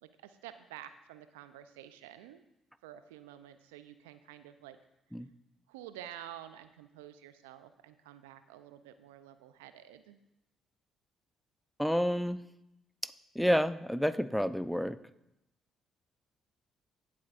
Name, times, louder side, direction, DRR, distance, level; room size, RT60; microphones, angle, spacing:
voice 1, 0.0-2.4 2.8-4.8 5.7-10.2, right 11 dB, 85° right, 12 dB, 0.5 m, -50 dB
voice 2, 11.8-12.4 13.0-15.0, equal, ahead, 14 dB, 0.5 m, -30 dB
16.5 x 7.7 x 2.5 m, 0.88 s
hypercardioid pair, 50°, 0 cm